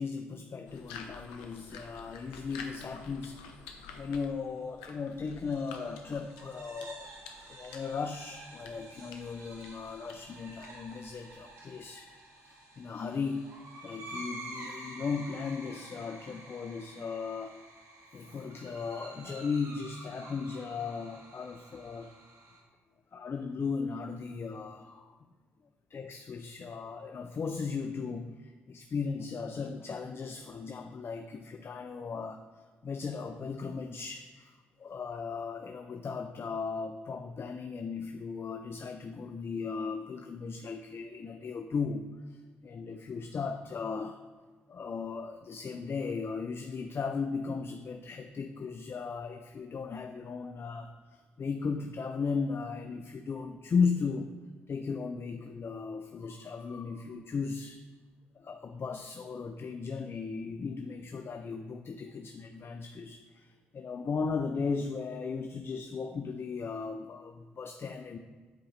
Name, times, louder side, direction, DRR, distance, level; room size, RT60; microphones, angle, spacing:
voice 1, 0.0-7.1 7.5-13.5 13.8-17.6 18.1-22.1 23.1-25.2 25.9-44.2 44.7-54.4 54.7-57.8 58.4-68.2, left 5 dB, 50° left, 7 dB, 0.6 m, -36 dB
sound 1, 0.7-11.5, left 5 dB, 85° left, 0.7 m, -50 dB
sound 2, 5.3-22.6, right 1 dB, 65° right, 1.9 m, -49 dB
8.3 x 4.8 x 4.3 m, 1.5 s
hypercardioid pair, 45°, 5 cm